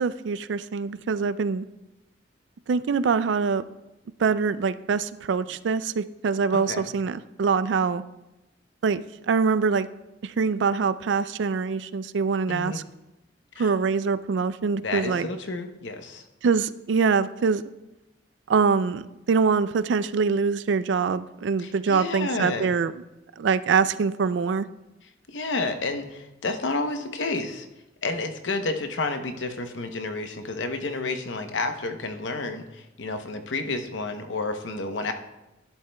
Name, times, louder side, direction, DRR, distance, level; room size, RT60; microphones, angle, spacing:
voice 1, 0.0-1.7 2.7-3.6 4.2-8.0 8.8-9.9 10.2-12.8 13.6-15.3 16.4-17.6 18.5-22.9 23.4-24.7, right 5 dB, 70° right, 15 dB, 0.4 m, -24 dB
voice 2, 6.5-6.9 12.5-12.8 13.6-13.7 14.8-16.2 21.6-22.7 25.3-27.7 28.0-35.1, left 3 dB, 85° left, 7 dB, 0.8 m, -30 dB
11.5 x 11.0 x 2.3 m, 0.98 s
head